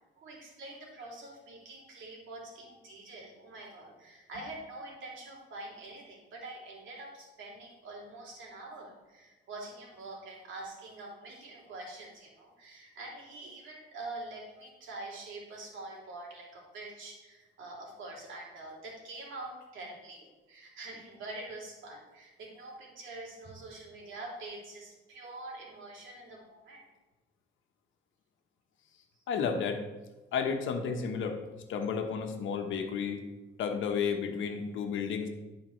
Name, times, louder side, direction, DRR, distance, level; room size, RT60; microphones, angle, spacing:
voice 1, 0.2-26.8, right 2 dB, 75° right, -2 dB, 3.0 m, -45 dB
voice 2, 29.3-29.9 30.3-31.4 31.7-33.2 33.6-35.3, left 6 dB, 80° left, 5 dB, 1.2 m, -32 dB
15.0 x 5.1 x 3.2 m, 1.1 s
cardioid pair, 90°, 20 cm